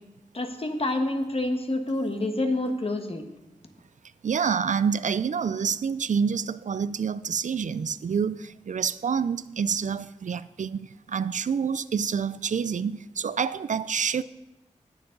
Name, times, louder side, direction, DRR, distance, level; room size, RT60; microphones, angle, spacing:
voice 1, 0.3-3.2, left 2 dB, 45° left, 1.4 m, -27 dB
voice 2, 4.2-14.2, right 6 dB, 75° right, 0.4 m, -27 dB
19.0 x 7.1 x 3.9 m
wide cardioid pair, 70°, 13 cm